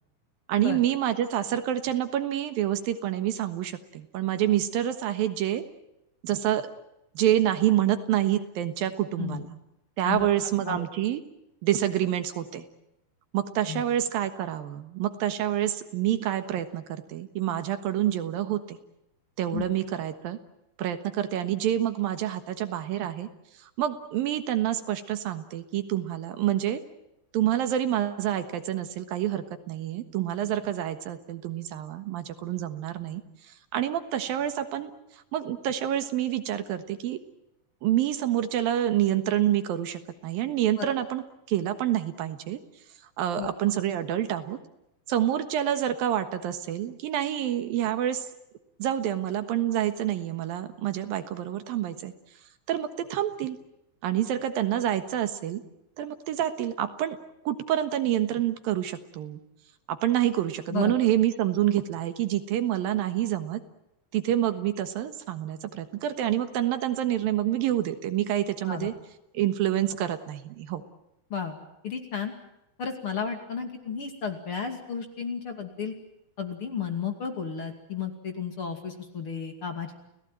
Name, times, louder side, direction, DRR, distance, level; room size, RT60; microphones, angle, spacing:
voice 1, 0.5-5.6 6.2-6.7 7.1-9.5 10.0-11.2 11.6-12.7 13.3-18.8 19.4-20.4 20.8-23.3 23.6-26.8 27.3-33.2 33.5-34.9 35.3-37.2 37.8-41.2 41.5-42.6 43.2-44.6 45.1-48.3 48.8-52.1 52.7-53.6 54.0-55.6 56.0-57.2 57.5-59.4 59.9-63.6 64.1-68.9 69.3-70.8, right 11 dB, 75° right, 9 dB, 3.1 m, -27 dB
voice 2, 10.0-10.9 13.7-13.8 19.5-19.6 40.8-40.9 43.4-43.5 60.7-60.9 68.6-68.9 71.3-71.6 71.8-72.3 72.8-75.9 76.4-80.0, left 6 dB, 40° left, 5 dB, 3.0 m, -33 dB
30.0 x 17.5 x 9.1 m, 0.87 s
omnidirectional pair, 4.2 m